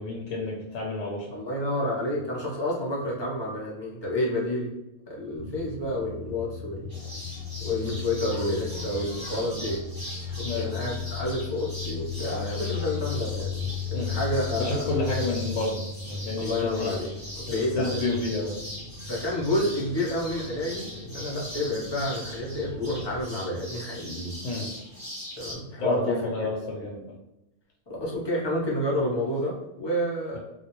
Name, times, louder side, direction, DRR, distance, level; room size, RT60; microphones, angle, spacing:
voice 1, 0.0-1.4 7.8-8.0 10.4-10.7 13.9-14.1 14.6-15.8 16.0-17.0 17.5-18.5 24.4-24.7 25.8-27.2, left 3 dB, 85° left, -2 dB, 1.0 m, -30 dB
voice 2, 1.3-4.7 5.1-6.9 7.6-9.8 10.4-14.9 16.4-18.1 19.1-24.3 25.4-26.5 27.9-30.4, left 1 dB, 30° left, -5 dB, 0.5 m, -29 dB
sound 1, 5.4-23.2, left 7 dB, 70° right, 0.9 m, -36 dB
sound 2, 6.9-25.5, equal, 20° right, 0.8 m, -40 dB
2.3 x 2.1 x 2.9 m, 0.92 s
omnidirectional pair, 1.3 m